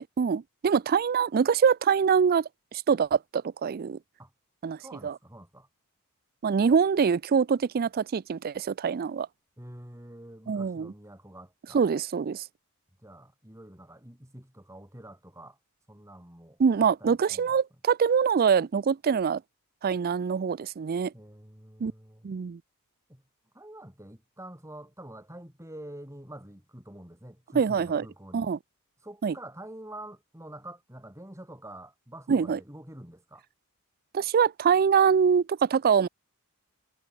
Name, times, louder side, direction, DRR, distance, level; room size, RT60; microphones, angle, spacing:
voice 1, 0.0-4.0 4.6-5.2 6.4-9.3 10.5-10.9 11.7-12.4 16.6-19.4 19.8-21.1 21.8-21.9 22.2-22.6 27.5-28.1 28.3-28.6 29.2-29.3 32.3-32.6 34.1-36.1, right 6 dB, 45° right, 0.4 m, -24 dB
voice 2, 4.8-5.7 9.6-11.8 13.0-15.6 15.9-16.6 17.0-17.5 21.1-22.3 23.1-23.2 23.5-28.5 29.0-33.4, right 1 dB, 15° right, 7.6 m, -46 dB
head